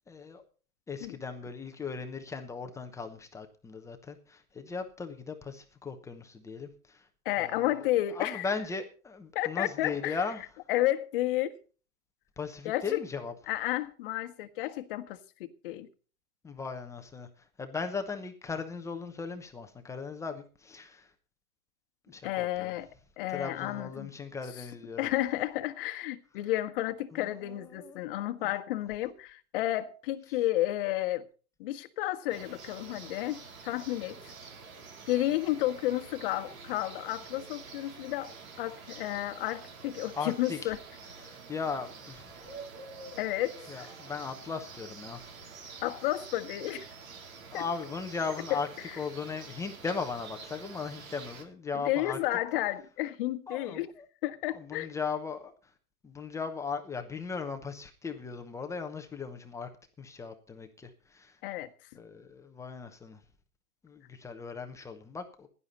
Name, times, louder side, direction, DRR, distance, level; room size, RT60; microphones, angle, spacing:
voice 1, 0.1-0.4 0.9-7.1 7.4-7.8 8.1-10.4 12.4-13.3 16.4-17.3 17.6-21.1 22.1-22.7 23.3-25.1 27.1-28.0 28.4-28.5 40.1-40.7 41.2-42.3 43.7-45.2 47.5-48.7 49.0-52.2 53.5-54.0 54.5-55.5 56.0-59.7 60.0-61.4 61.9-63.2 63.8-65.5, left 5 dB, 5° left, 0.9 m, -38 dB
voice 2, 7.2-8.5 9.3-10.2 10.7-11.5 12.6-13.0 13.5-15.9 22.2-22.9 23.2-24.1 25.0-31.3 31.6-34.3 35.1-40.8 43.2-43.9 45.8-46.9 47.5-47.6 48.5-48.6 51.8-53.9 54.2-54.9 61.4-61.7, left 15 dB, 35° left, 1.4 m, -32 dB
sound 1, 32.3-51.4, right 4 dB, 60° right, 3.5 m, -48 dB
16.0 x 11.0 x 4.2 m
hypercardioid pair, 135°, 46 cm